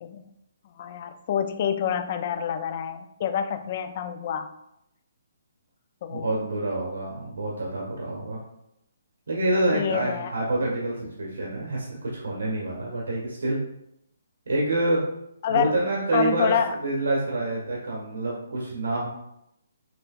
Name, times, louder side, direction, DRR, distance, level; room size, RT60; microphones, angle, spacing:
voice 1, 0.8-4.5 6.0-6.3 9.7-10.3 15.4-15.8 16.1-16.8, left 8 dB, 30° left, 8 dB, 0.3 m, -27 dB
voice 2, 6.1-8.4 9.3-13.6 14.5-15.0 15.5-19.1, right 2 dB, 85° right, -3 dB, 1.5 m, -27 dB
6.8 x 3.0 x 2.4 m, 0.81 s
hypercardioid pair, 175°, 0 cm